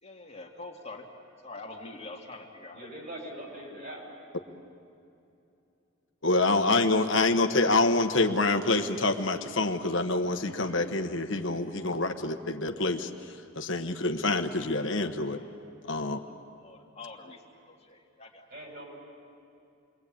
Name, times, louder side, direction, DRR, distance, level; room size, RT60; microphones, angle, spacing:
voice 1, 0.0-1.1 1.4-3.2 15.3-15.6 16.0-17.4 17.7-18.5, left 3 dB, 30° left, 0 dB, 2.3 m, -46 dB
voice 2, 2.7-4.1 10.6-10.8 18.5-18.8, right 1 dB, 50° right, 0 dB, 7.0 m, -42 dB
voice 3, 6.2-13.1 13.5-15.4 15.9-16.2, left 2 dB, 70° left, 6 dB, 1.3 m, -26 dB
29.0 x 22.5 x 8.7 m, 2.7 s
head